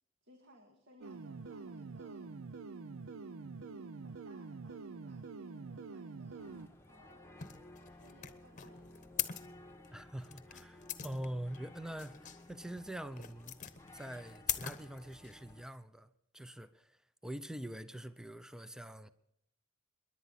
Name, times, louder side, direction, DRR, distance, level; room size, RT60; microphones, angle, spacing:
voice 1, 0.2-2.3 3.6-6.5 6.8-7.3 7.9-9.4, right 1 dB, 60° right, 2.2 m, -63 dB
sound 1, 1.0-6.7, right 4 dB, 80° right, 0.6 m, -46 dB
sound 2, 6.4-15.6, left 1 dB, 10° left, 1.0 m, -56 dB
sound 3, 7.4-15.6, left 10 dB, 40° left, 0.9 m, -42 dB
voice 2, 9.9-13.6 13.9-16.1 16.3-19.1, right 1 dB, 5° right, 0.6 m, -44 dB
29.0 x 11.0 x 4.1 m
head